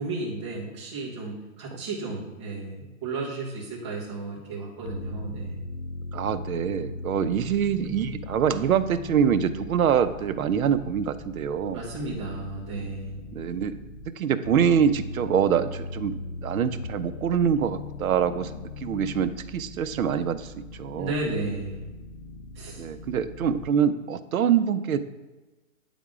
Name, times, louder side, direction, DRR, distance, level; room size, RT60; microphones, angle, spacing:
voice 1, 0.0-5.6 11.7-13.2 20.9-21.9 22.5-22.9, right 2 dB, 20° right, -5 dB, 1.2 m, -33 dB
sound 1, 4.9-14.0 14.4-23.6, left 3 dB, 75° left, 0.8 m, -39 dB
voice 2, 6.1-11.8 13.3-13.7 14.2-16.1 16.4-21.1 22.8-25.0, right 8 dB, 80° right, 12 dB, 0.6 m, -25 dB
9.2 x 3.6 x 3.6 m, 1.2 s
hypercardioid pair, 180°, 42 cm